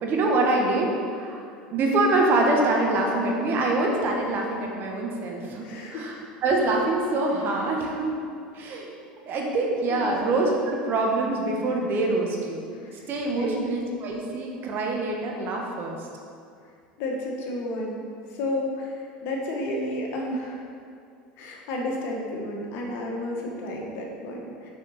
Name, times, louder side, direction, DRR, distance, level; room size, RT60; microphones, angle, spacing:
voice 1, 0.0-1.4 1.7-6.2 6.4-8.1 8.5-8.9 9.3-12.7 13.1-16.0, right 2 dB, 45° right, 0 dB, 1.2 m, -25 dB
voice 2, 5.6-6.2 9.9-10.2 12.7-13.6 17.0-18.0 18.3-20.6 21.4-24.7, left 1 dB, 55° left, -1 dB, 1.3 m, -32 dB
5.8 x 5.1 x 4.1 m, 2.4 s
hypercardioid pair, 80°, 5 cm